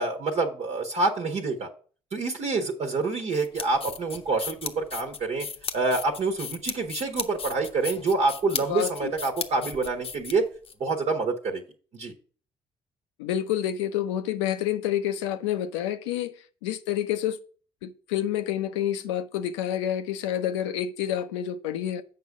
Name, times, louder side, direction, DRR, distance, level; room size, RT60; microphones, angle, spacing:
voice 1, 0.0-1.7 2.1-5.5 5.7-10.4 10.8-11.6 11.9-12.1, right 3 dB, 50° right, 1.3 m, -27 dB
sound 1, 3.3-10.7, left 6 dB, 40° left, 0.8 m, -36 dB
voice 2, 8.7-9.1 13.2-16.3 16.6-17.4 17.8-22.0, left 11 dB, 80° left, 0.6 m, -28 dB
7.6 x 5.4 x 4.8 m
hypercardioid pair, 50°, 14 cm